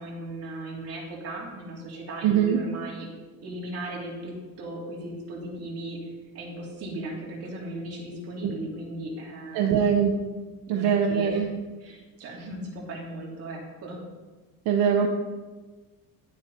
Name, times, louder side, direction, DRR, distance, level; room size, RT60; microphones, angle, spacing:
voice 1, 0.0-3.1 3.4-6.0 6.3-9.7 10.7-11.5 11.8-14.0, right 1 dB, 40° right, -3 dB, 3.4 m, -37 dB
voice 2, 2.2-2.6 8.4-8.5 9.5-10.3 10.7-11.5 14.7-15.1, right 7 dB, 70° right, 3 dB, 1.1 m, -22 dB
11.5 x 9.4 x 4.3 m, 1.3 s
cardioid pair, 175°, 36 cm